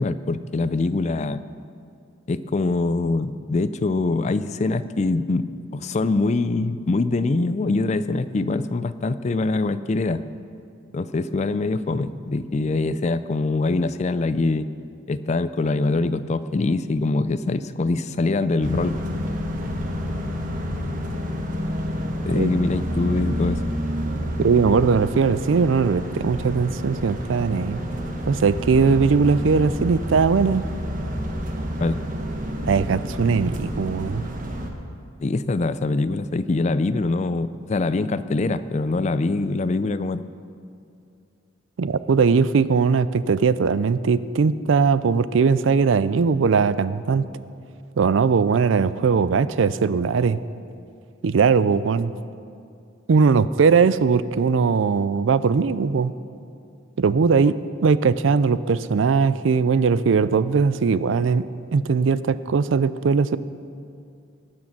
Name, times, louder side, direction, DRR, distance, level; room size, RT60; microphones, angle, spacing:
voice 1, 0.0-1.4 2.3-5.5 5.7-10.2 10.9-14.7 15.1-19.0 22.3-23.6 31.8-32.0 35.2-40.2, left 3 dB, 35° left, 14 dB, 0.4 m, -23 dB
sound 1, 18.6-34.7, equal, 45° right, 1.2 m, -29 dB
voice 2, 24.4-27.8 28.3-30.6 32.7-34.2 41.8-47.2 48.0-50.4 51.2-52.1 53.1-56.1 57.0-61.5 61.7-63.4, right 5 dB, 75° right, 16 dB, 0.4 m, -20 dB
19.0 x 6.5 x 6.0 m, 2.5 s
head